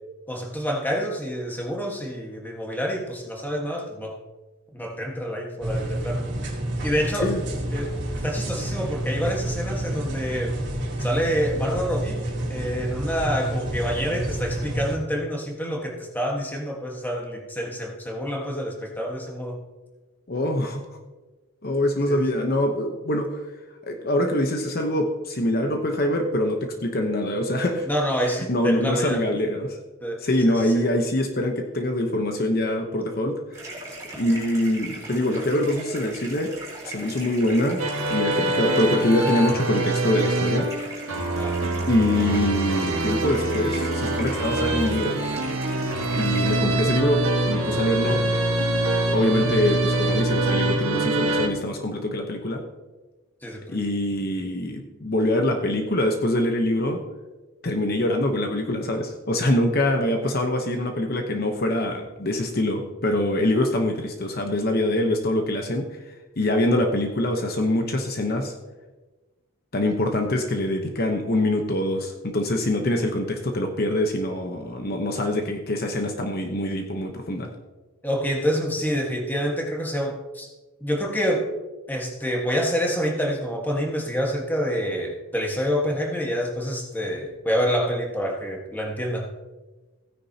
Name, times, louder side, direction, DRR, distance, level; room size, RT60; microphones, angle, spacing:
voice 1, 0.3-4.1 4.7-6.2 6.8-7.3 7.7-7.9 8.2-10.6 11.0-19.6 22.1-22.2 27.9-29.2 30.0-30.7 41.3-41.6 53.4-53.8 78.0-80.5 80.8-81.5 81.9-89.3, equal, 10° left, 0 dB, 1.4 m, -27 dB
sound 1, 5.6-14.9, right 1 dB, 55° right, 2.4 m, -29 dB
voice 2, 20.3-20.8 21.6-23.4 23.9-27.9 28.2-29.8 30.2-33.4 34.2-36.5 36.8-37.8 38.1-40.7 41.9-45.2 46.1-48.2 49.1-52.6 53.7-57.0 57.6-66.0 66.4-68.5 69.7-77.5, left 1 dB, 45° left, 3 dB, 0.9 m, -24 dB
sound 2, 33.5-46.6, right 2 dB, 15° right, 3.9 m, -39 dB
sound 3, 37.8-51.5, right 2 dB, 75° right, 1.5 m, -24 dB
16.0 x 9.8 x 2.8 m, 1.2 s
head